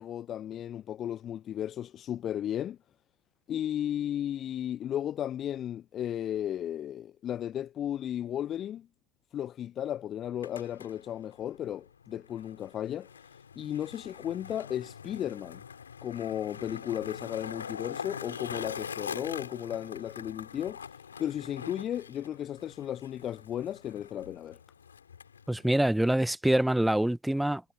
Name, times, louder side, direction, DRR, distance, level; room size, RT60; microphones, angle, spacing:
voice 1, 0.0-2.8 3.5-8.9 9.3-13.1 13.6-15.6 16.0-20.9 21.2-24.6, left 10 dB, 30° left, 0.4 m, -34 dB
Skateboard, 10.2-25.9, left 7 dB, 70° left, 4.5 m, -44 dB
voice 2, 25.5-27.6, right 1 dB, 5° right, 0.7 m, -25 dB
figure-of-eight pair, 90°, 0 cm